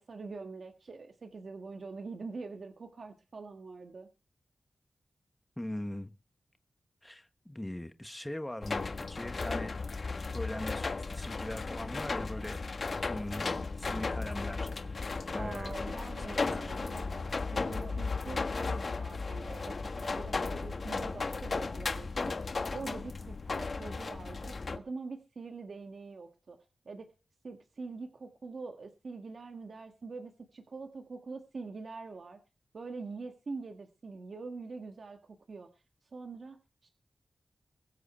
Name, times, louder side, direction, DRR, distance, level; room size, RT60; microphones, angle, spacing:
voice 1, 0.0-4.1 15.3-26.6 26.8-27.1 27.4-32.4 32.7-35.7 36.1-36.9, right 4 dB, 65° right, 1.6 m, -44 dB
voice 2, 5.6-6.1 7.0-9.7 10.3-12.6 13.1-15.0 15.3-15.7 16.4-16.7, left 1 dB, 10° left, 1.3 m, -40 dB
sound 1, 8.6-24.8, left 4 dB, 55° left, 1.5 m, -35 dB
22.0 x 8.0 x 4.4 m
wide cardioid pair, 110°, 0 cm